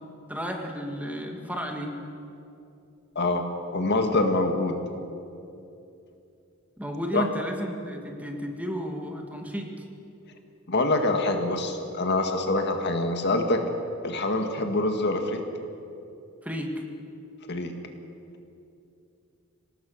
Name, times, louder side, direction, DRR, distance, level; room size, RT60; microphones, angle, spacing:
voice 1, 0.3-2.0 6.8-9.7 16.4-16.7, equal, 5° right, 2 dB, 2.0 m, -33 dB
voice 2, 3.2-3.5 3.7-4.8 7.1-7.2 10.7-13.6 14.0-15.4 17.5-17.8, left 2 dB, 50° left, 5 dB, 1.9 m, -25 dB
26.0 x 18.5 x 6.5 m, 2.7 s
head